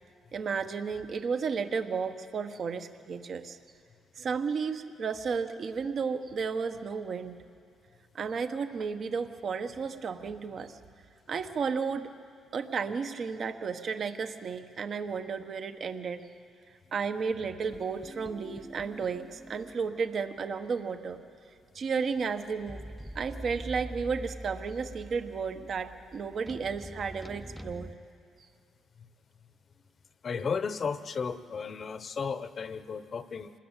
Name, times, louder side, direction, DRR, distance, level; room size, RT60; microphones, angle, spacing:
voice 1, 0.3-3.6 4.2-7.4 8.1-10.8 11.3-12.1 12.5-16.2 16.9-21.2 21.7-22.8 23.1-27.9, right 5 dB, 55° right, 8 dB, 1.2 m, -33 dB
sound 1, 17.6-20.1 20.4-20.5 22.7-27.9, right 1 dB, 5° right, 0.7 m, -44 dB
voice 2, 30.2-33.5, left 5 dB, 45° left, 12 dB, 1.0 m, -34 dB
26.0 x 19.5 x 9.0 m, 2.2 s
cardioid pair, 90°, 0 cm